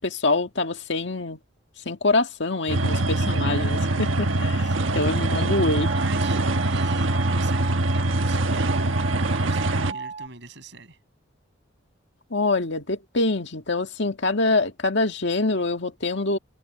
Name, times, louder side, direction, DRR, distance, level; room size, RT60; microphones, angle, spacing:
voice 1, 0.0-1.4 1.9-5.9 12.3-16.4, left 2 dB, 65° left, 1.9 m, -25 dB
sound 1, 2.7-9.9, right 2 dB, 85° right, 1.2 m, -23 dB
sound 2, 4.4-10.3, right 5 dB, 35° right, 5.7 m, -39 dB
voice 2, 4.6-4.9 5.9-8.8 9.4-11.0, right 3 dB, 65° right, 7.6 m, -42 dB
head